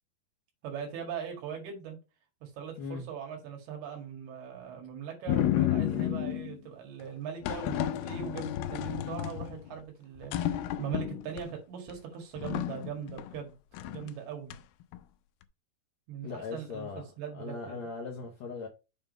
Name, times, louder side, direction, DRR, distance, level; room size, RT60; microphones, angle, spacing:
voice 1, 0.6-2.0 2.4-13.5 13.9-14.5 16.1-16.9 17.2-17.9, right 8 dB, 80° right, 3.8 m, -40 dB
sound 1, 5.3-6.6 7.4-9.8 10.2-11.4 11.9-12.0 12.4-13.4 13.7-14.1 14.5-15.0, left 12 dB, 85° left, 2.5 m, -31 dB
voice 2, 16.2-17.0 17.3-18.7, left 4 dB, 70° left, 1.7 m, -39 dB
7.2 x 3.6 x 5.3 m
omnidirectional pair, 4.4 m